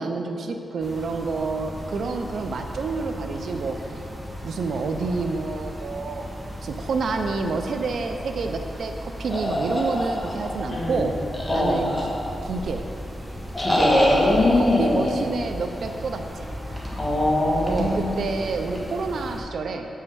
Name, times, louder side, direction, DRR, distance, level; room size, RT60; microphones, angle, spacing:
voice 1, 0.0-3.8 4.4-6.3 6.6-11.1 11.5-11.9 12.4-12.8 14.6-16.5 17.7-19.9, right 4 dB, 70° right, 5 dB, 0.6 m, -28 dB
sound 1, 0.8-19.4, equal, 5° right, 1.4 m, -36 dB
sound 2, 9.3-10.6 11.3-12.5 13.5-14.3, equal, 10° left, 1.4 m, -26 dB
voice 2, 10.7-11.0 11.5-11.8 13.6-15.2 17.0-18.1, left 1 dB, 30° left, -4 dB, 1.8 m, -21 dB
8.3 x 5.6 x 6.3 m, 2.7 s
wide cardioid pair, 120°, 0 cm